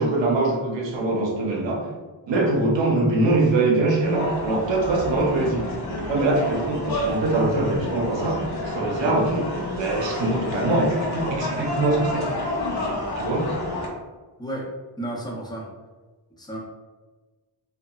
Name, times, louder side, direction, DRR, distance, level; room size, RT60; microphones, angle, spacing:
voice 1, 0.0-1.9 2.3-5.7 6.0-9.5 9.8-12.3 13.2-13.5, right 2 dB, 70° right, 0 dB, 0.7 m, -23 dB
sound 1, 4.0-13.9, left 1 dB, 55° left, 0.8 m, -29 dB
voice 2, 15.0-15.7 16.4-16.6, right 1 dB, 10° left, -2 dB, 0.4 m, -32 dB
2.8 x 2.3 x 2.3 m, 1.3 s
wide cardioid pair, 115°, 46 cm